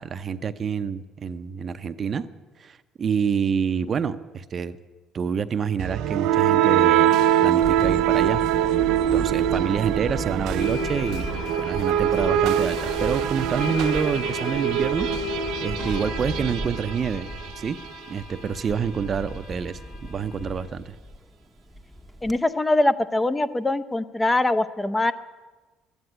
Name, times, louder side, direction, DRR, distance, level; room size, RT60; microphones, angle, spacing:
voice 1, 0.0-2.2 2.6-4.8 5.1-7.1 7.4-8.8 9.1-15.1 15.6-17.3 17.6-17.8 18.1-19.8 20.1-20.9, right 6 dB, 45° right, 11 dB, 0.7 m, -27 dB
sound 1, 5.8-17.7, right 11 dB, 75° right, 0.4 m, -23 dB
Camera, 7.6-22.4, equal, ahead, 1.0 m, -37 dB
sound 2, 9.5-9.6 10.6-20.6, left 8 dB, 65° left, 5.7 m, -36 dB
voice 2, 22.2-25.1, left 2 dB, 15° left, 11 dB, 0.7 m, -22 dB
12.0 x 9.5 x 9.9 m, 1.2 s
supercardioid pair, 65°, 0 cm